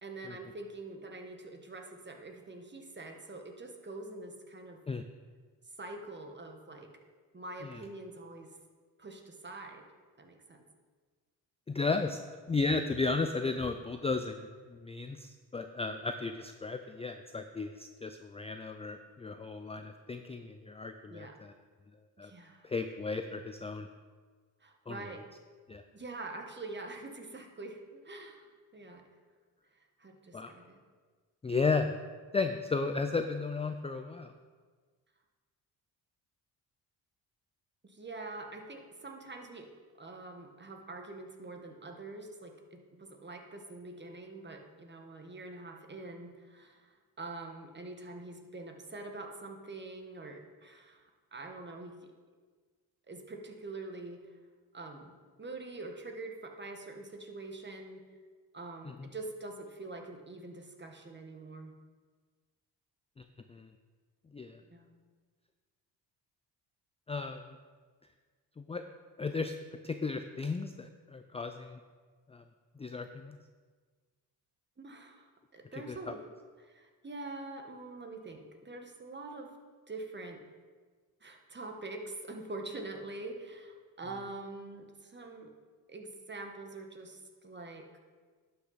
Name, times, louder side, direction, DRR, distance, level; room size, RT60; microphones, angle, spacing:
voice 1, 0.0-4.8 5.8-6.9 7.3-8.5 9.0-9.8 10.2-10.6 21.1-21.3 22.2-22.7 24.6-25.2 25.9-29.0 30.0-30.8 37.8-39.7 40.0-51.0 51.3-52.0 53.1-54.2 54.7-55.1 55.4-58.0 58.5-61.7 64.7-65.0 74.8-75.3 75.5-76.2 76.6-79.5 79.9-80.4 81.2-85.5 85.9-87.9, right 2 dB, 25° right, 3 dB, 1.5 m, -45 dB
voice 2, 11.7-12.2 12.5-21.5 22.2-22.3 22.6-23.9 24.9-25.0 25.7-25.8 30.3-30.5 31.4-32.0 32.3-34.3 58.8-59.1 63.2-63.7 64.3-64.6 67.1-67.6 68.6-68.8 69.2-69.5 69.8-71.8 72.3-72.4 72.8-73.4 75.7-76.1, left 4 dB, 15° left, 7 dB, 0.4 m, -34 dB
11.5 x 5.8 x 4.1 m, 1.5 s
supercardioid pair, 70°, 43 cm